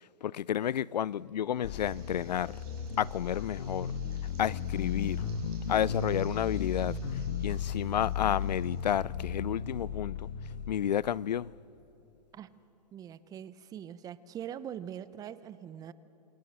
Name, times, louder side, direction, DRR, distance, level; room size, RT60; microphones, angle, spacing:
voice 1, 0.2-2.5 3.0-3.9 4.4-5.3 5.7-7.0 7.4-10.3 10.7-11.5, left 10 dB, 85° left, 0.5 m, -31 dB
sound 1, 1.6-10.7, left 7 dB, 50° left, 1.9 m, -35 dB
sound 2, 1.6-9.0, right 6 dB, 35° right, 7.4 m, -60 dB
voice 2, 12.9-15.9, right 9 dB, 15° right, 0.7 m, -42 dB
28.0 x 23.5 x 7.6 m
hypercardioid pair, 140°, 21 cm